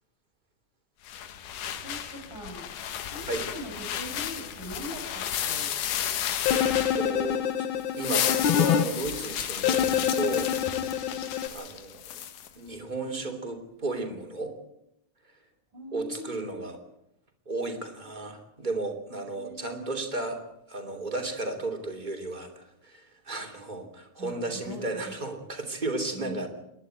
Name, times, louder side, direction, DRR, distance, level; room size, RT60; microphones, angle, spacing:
sound 1, 1.1-7.4 7.8-12.5, left 10 dB, 85° left, 2.9 m, -33 dB
voice 1, 1.8-2.6 3.0-5.8 15.7-16.7 19.3-20.0 24.2-25.1 26.1-26.5, equal, 80° right, -2 dB, 7.5 m, -41 dB
sound 2, 6.5-8.8 9.6-11.5, left 9 dB, 70° left, 1.2 m, -26 dB
voice 2, 6.5-7.7 8.0-10.5 11.5-12.2 12.6-14.5 15.2-15.4 15.9-16.8 17.4-20.4 20.7-26.5, right 2 dB, 15° right, 4 dB, 2.8 m, -34 dB
29.0 x 11.0 x 9.2 m, 0.80 s
omnidirectional pair, 3.5 m